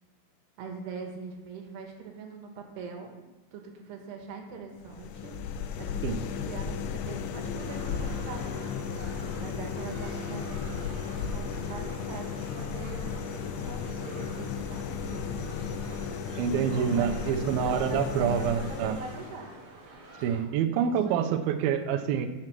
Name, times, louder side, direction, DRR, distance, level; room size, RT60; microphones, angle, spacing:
voice 1, 0.6-3.1 3.5-5.3 5.8-8.8 9.4-15.4 16.5-19.5 20.8-21.4, right 5 dB, 70° right, 2 dB, 3.3 m, -42 dB
sound 1, 4.8-19.5, left 6 dB, 80° left, 2.4 m, -35 dB
sound 2, 7.6-20.4, right 2 dB, 50° right, 2.7 m, -48 dB
voice 2, 16.4-19.0 20.2-22.3, right 8 dB, 85° right, 7 dB, 2.1 m, -27 dB
7.7 x 7.4 x 6.0 m, 1.2 s
omnidirectional pair, 5.2 m